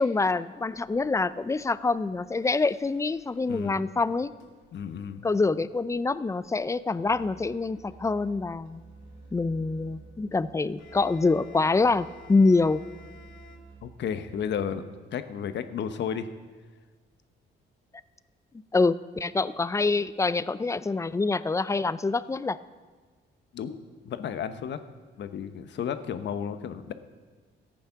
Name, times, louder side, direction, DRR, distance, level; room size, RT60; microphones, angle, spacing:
voice 1, 0.0-4.3 5.2-8.8 9.3-12.8 18.7-22.6, left 3 dB, 15° left, 16 dB, 0.4 m, -25 dB
sound 1, 0.6-13.6, left 5 dB, 80° left, 1.8 m, -57 dB
voice 2, 3.5-3.9 4.7-5.3 13.8-14.8 15.1-16.3 23.5-23.8 24.0-24.8 25.2-26.9, left 8 dB, 65° left, 10 dB, 0.9 m, -33 dB
Musical instrument, 7.0-14.6, right 3 dB, 90° right, 4.3 m, -51 dB
14.5 x 8.6 x 5.8 m, 1.4 s
cardioid pair, 90°, 20 cm